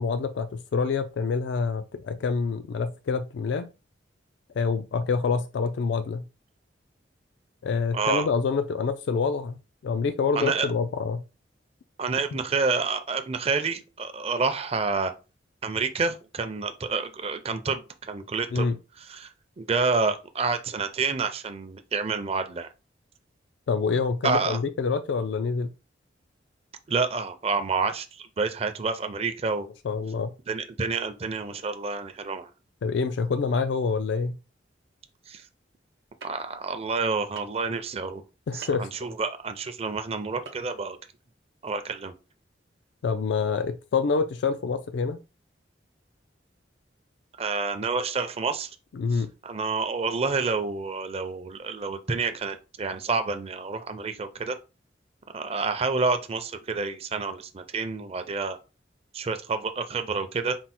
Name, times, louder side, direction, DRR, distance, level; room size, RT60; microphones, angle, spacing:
voice 1, 0.0-3.7 4.6-6.2 7.6-9.6 9.8-11.2 18.5-18.8 23.7-25.7 29.8-30.3 32.8-34.4 38.5-38.9 43.0-45.2 48.9-49.3, left 5 dB, 70° left, 0.3 m, -26 dB
voice 2, 7.9-8.3 10.3-10.7 12.0-15.1 15.6-18.7 19.0-19.3 19.6-22.7 24.2-24.6 26.9-29.7 30.5-32.5 35.3-35.4 36.2-38.2 38.5-41.0 41.6-42.1 47.4-48.7 49.1-54.6 55.3-58.6 59.1-60.6, right 4 dB, 35° right, 0.5 m, -28 dB
sound 1, 36.2-36.3 37.4-37.6 38.6-38.8 40.4-40.6 40.9-41.0, right 5 dB, 70° right, 0.9 m, -41 dB
4.4 x 2.0 x 4.2 m
head